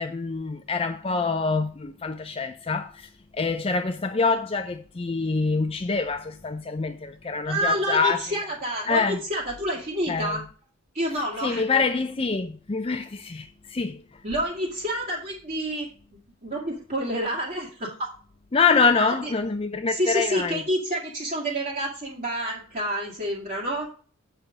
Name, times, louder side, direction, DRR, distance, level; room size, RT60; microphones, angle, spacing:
voice 1, 0.0-8.2 8.9-9.2 10.1-10.4 11.4-14.0 18.5-20.6, left 4 dB, 25° left, 0.4 m, -25 dB
voice 2, 7.2-10.4 10.9-11.6 14.2-15.9 16.4-18.1 19.0-19.3 19.9-23.9, equal, 35° right, 1.9 m, -28 dB
8.0 x 5.5 x 4.9 m
head